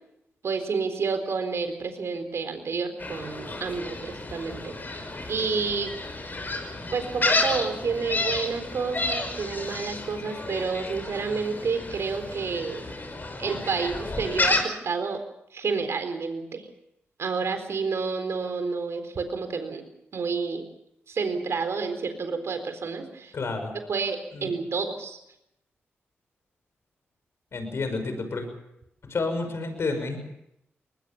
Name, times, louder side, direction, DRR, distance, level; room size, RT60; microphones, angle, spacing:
voice 1, 0.4-5.9 6.9-12.8 13.4-15.2 15.5-16.7 17.2-19.8 20.1-20.6 21.1-23.3 23.9-25.2, right 5 dB, 65° right, 8 dB, 4.1 m, -30 dB
Gull seagull, 3.0-14.6, left 2 dB, 40° left, 5.4 m, -31 dB
voice 2, 23.3-23.7 24.3-24.5 27.5-28.5 29.0-30.2, left 3 dB, 60° left, 7 dB, 6.0 m, -30 dB
22.0 x 21.0 x 7.1 m, 0.81 s
supercardioid pair, 45°, 5 cm